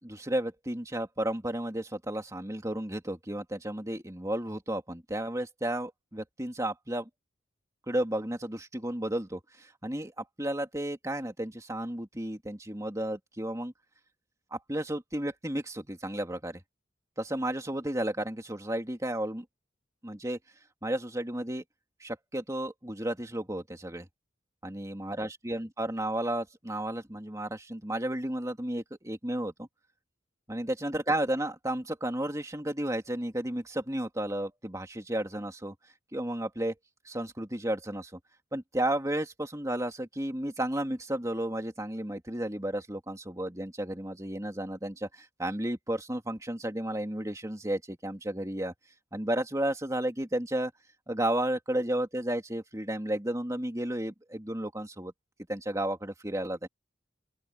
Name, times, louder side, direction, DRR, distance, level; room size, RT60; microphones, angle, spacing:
voice 1, 0.0-7.1 7.9-13.7 14.5-16.6 17.2-19.4 20.0-20.4 20.8-21.6 22.0-24.1 24.6-29.7 30.5-35.7 36.1-36.7 37.0-38.2 38.5-48.7 49.1-50.7 51.1-55.1 55.5-56.7, right 1 dB, 15° right, 2.6 m, -33 dB
open air
head